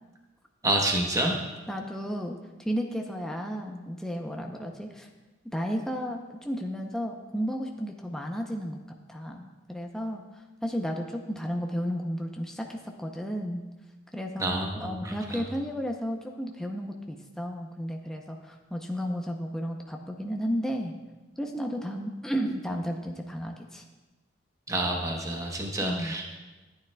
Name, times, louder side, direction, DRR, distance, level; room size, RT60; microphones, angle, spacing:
voice 1, 0.6-1.4 14.4-15.4 24.7-26.2, right 1 dB, 15° right, 1 dB, 0.9 m, -28 dB
voice 2, 1.7-5.1 5.4-8.8 9.1-13.6 14.1-20.9 21.4-23.8 25.8-26.2, equal, 5° left, 1 dB, 0.6 m, -33 dB
14.0 x 9.1 x 2.2 m, 1.2 s
head